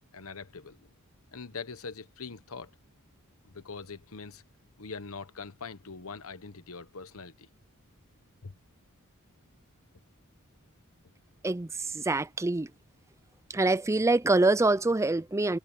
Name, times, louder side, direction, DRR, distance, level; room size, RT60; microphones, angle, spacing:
voice 1, 0.1-0.8 1.3-2.7 3.4-4.4 4.8-7.5 8.4-8.5, left 4 dB, 65° left, 1.1 m, -42 dB
voice 2, 11.4-12.7 13.5-15.6, right 2 dB, 15° right, 0.4 m, -25 dB
head